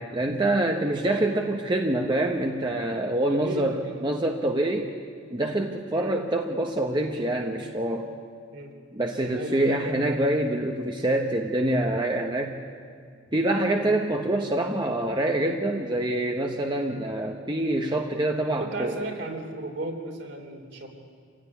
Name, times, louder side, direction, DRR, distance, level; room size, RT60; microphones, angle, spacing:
voice 1, 0.0-4.9 5.3-8.1 8.9-12.5 13.3-18.9, right 1 dB, 25° right, 2 dB, 1.1 m, -26 dB
voice 2, 3.3-4.0 5.9-6.2 8.5-8.7 9.3-9.8 13.8-13.9 18.4-20.9, right 2 dB, 60° right, 2 dB, 3.4 m, -36 dB
27.5 x 16.5 x 9.7 m, 2.1 s
head